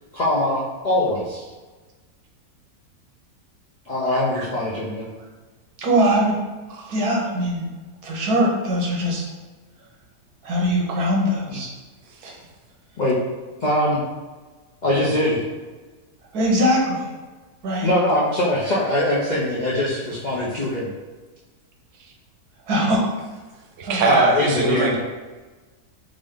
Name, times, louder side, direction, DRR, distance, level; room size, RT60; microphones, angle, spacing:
voice 1, 0.1-1.4 3.9-5.0 13.0-13.2 13.6-14.0 14.8-15.4 17.8-20.9 24.0-24.9, left 1 dB, 65° left, -6 dB, 0.4 m, -22 dB
voice 2, 4.1-4.5 5.8-6.3 6.9-7.7 8.0-9.2 10.4-11.7 12.2-12.3 16.3-17.1 17.6-17.9 22.7-23.0 23.8-24.2, equal, 90° right, -1 dB, 1.3 m, -21 dB
voice 3, 23.8-25.0, right 4 dB, 65° right, 2 dB, 0.8 m, -21 dB
3.7 x 2.6 x 3.4 m, 1.3 s
omnidirectional pair, 1.6 m